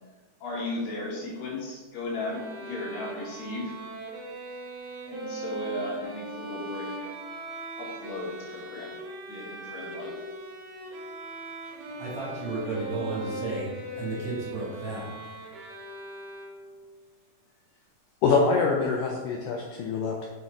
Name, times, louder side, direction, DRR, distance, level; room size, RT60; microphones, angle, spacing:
voice 1, 0.4-3.8 5.0-7.0 7.8-9.0 9.3-10.1, left 2 dB, 65° left, -4 dB, 2.9 m, -36 dB
Bowed string instrument, 2.2-16.9, right 2 dB, 65° right, 2.4 m, -39 dB
voice 2, 11.5-15.1, right 3 dB, 50° right, -6 dB, 2.7 m, -34 dB
voice 3, 18.2-20.3, left 4 dB, 90° left, 0 dB, 1.8 m, -25 dB
6.3 x 6.2 x 4.1 m, 1.2 s
omnidirectional pair, 4.7 m